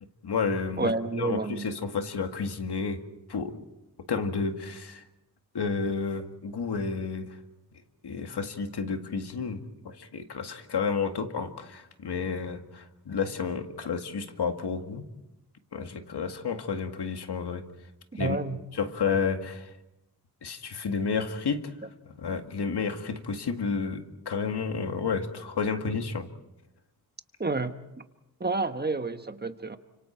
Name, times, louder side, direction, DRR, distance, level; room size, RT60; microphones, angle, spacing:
voice 1, 0.2-3.0 3.3-3.6 4.1-5.0 5.5-7.4 8.0-15.0 15.7-17.6 18.2-18.4 18.7-19.8 20.4-21.7 22.2-26.3, left 5 dB, 85° left, 6 dB, 2.0 m, -31 dB
voice 2, 0.8-1.7 18.1-18.6 27.4-27.8 28.4-29.8, right 3 dB, 25° right, 9 dB, 1.2 m, -29 dB
30.0 x 26.0 x 4.5 m, 0.91 s
wide cardioid pair, 125°, 39 cm